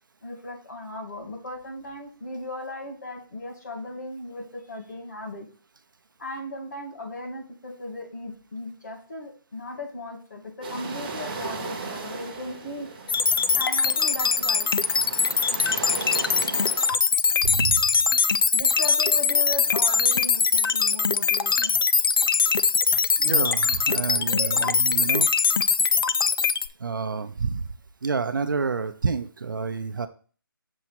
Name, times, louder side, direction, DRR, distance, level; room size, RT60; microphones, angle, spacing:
voice 1, 0.2-5.5 6.2-12.9 13.6-14.7 18.5-21.8 24.1-24.7, left 2 dB, 50° left, 0 dB, 2.3 m, -37 dB
sound 1, 10.6-16.9, right 4 dB, 25° right, 1.0 m, -36 dB
sound 2, 13.1-26.7, left 5 dB, 70° left, 0.4 m, -22 dB
voice 2, 17.4-17.8 23.2-25.3 26.8-27.7 28.0-30.1, right 5 dB, 60° right, 9 dB, 0.6 m, -28 dB
7.0 x 3.0 x 5.9 m, 0.38 s
hypercardioid pair, 175°, 12 cm